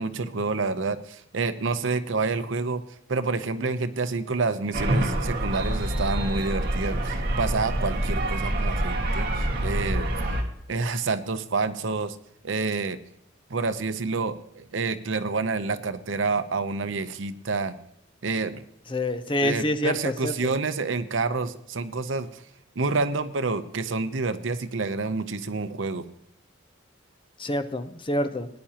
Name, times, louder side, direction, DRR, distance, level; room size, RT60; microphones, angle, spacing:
voice 1, 0.0-2.8 3.1-10.1 10.7-12.2 12.4-13.0 13.5-17.8 18.2-18.6 19.4-22.4 22.8-26.1, right 3 dB, 75° right, 11 dB, 0.7 m, -28 dB
sound 1, 4.7-10.4, right 1 dB, 50° right, 1.7 m, -26 dB
voice 2, 18.9-20.5 27.4-28.5, left 1 dB, 25° left, 9 dB, 0.7 m, -27 dB
19.0 x 10.0 x 2.9 m, 0.72 s
head